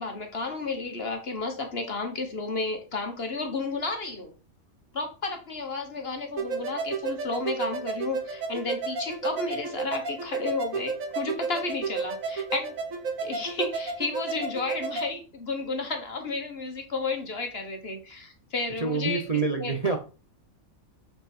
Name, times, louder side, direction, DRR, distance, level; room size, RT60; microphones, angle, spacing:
voice 1, 0.0-4.3 4.9-12.7 13.2-19.2 19.6-19.7, left 3 dB, 45° left, 1.6 m, -32 dB
sound 1, 6.4-15.1, right 4 dB, 70° right, 1.8 m, -32 dB
voice 2, 18.8-20.0, right 4 dB, 30° right, 0.9 m, -26 dB
7.7 x 5.2 x 4.4 m
omnidirectional pair, 1.5 m